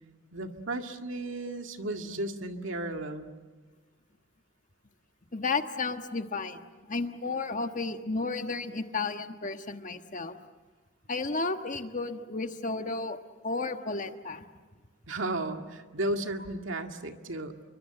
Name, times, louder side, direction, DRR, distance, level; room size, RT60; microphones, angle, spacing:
voice 1, 0.3-3.3 15.1-17.5, right 2 dB, 70° right, 5 dB, 2.1 m, -34 dB
voice 2, 5.3-10.4 11.1-13.2 13.4-14.4, left 3 dB, 40° left, 7 dB, 1.4 m, -33 dB
28.5 x 24.0 x 7.9 m, 1.4 s
head